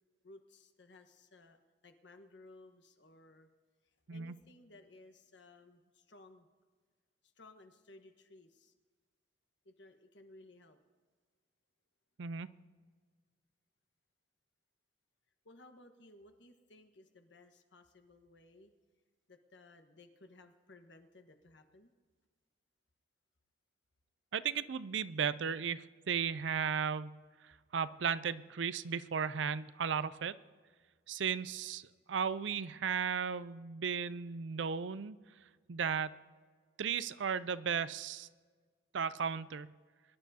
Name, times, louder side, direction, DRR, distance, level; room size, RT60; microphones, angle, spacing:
voice 1, 0.2-1.6 1.8-3.5 4.1-6.5 7.2-8.7 9.6-10.8 15.4-18.7 19.3-21.9, left 2 dB, 75° left, 6 dB, 1.4 m, -59 dB
voice 2, 24.3-27.2 27.4-30.4 31.1-35.2 35.7-36.2 36.8-38.3 38.9-39.7, right 7 dB, 80° right, 16 dB, 0.5 m, -35 dB
23.5 x 11.5 x 2.8 m, 1.5 s
head